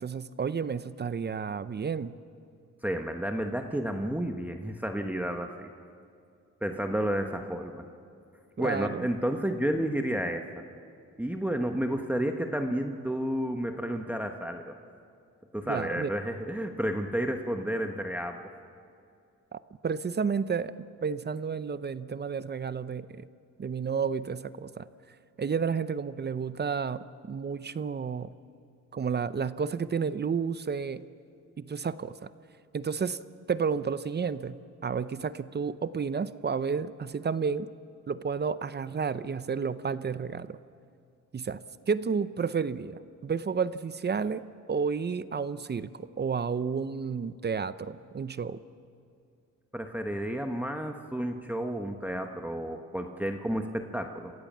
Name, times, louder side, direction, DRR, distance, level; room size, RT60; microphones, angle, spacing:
voice 1, 0.0-2.1 8.6-9.1 15.7-16.1 19.5-20.7 21.0-23.3 23.6-24.9 25.4-28.3 28.9-31.0 31.6-32.3 32.7-33.2 33.5-37.7 38.1-40.6 41.3-41.6 41.9-48.6, right 6 dB, 35° right, 14 dB, 0.7 m, -31 dB
voice 2, 2.8-5.7 6.6-7.8 8.6-10.6 11.2-14.7 15.5-18.4 49.7-54.3, right 1 dB, 5° right, 4 dB, 1.1 m, -31 dB
27.5 x 16.0 x 7.4 m, 2.4 s
cardioid pair, 100°, 31 cm